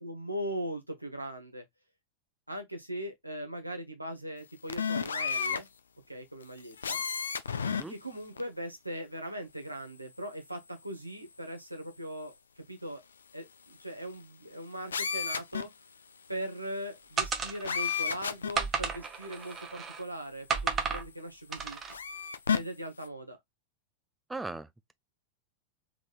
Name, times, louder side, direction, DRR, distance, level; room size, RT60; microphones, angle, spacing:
voice 1, 0.0-1.6 2.5-5.7 6.1-7.0 7.9-12.3 12.7-13.0 13.3-15.7 16.3-21.8 22.5-23.4, equal, 85° right, 1.1 m, -39 dB
sound 1, 4.7-5.6 6.8-7.8 8.4-8.5 14.9-15.6 17.6-18.5 19.5-19.6 21.9-22.6, left 6 dB, 70° left, 0.4 m, -31 dB
sound 2, 17.2-18.0 18.5-20.0 20.5-21.1 21.5-21.9, right 5 dB, 25° right, 0.8 m, -33 dB
voice 2, 24.3-24.9, right 3 dB, 10° right, 0.3 m, -39 dB
3.7 x 3.7 x 2.4 m
figure-of-eight pair, 90°, 0 cm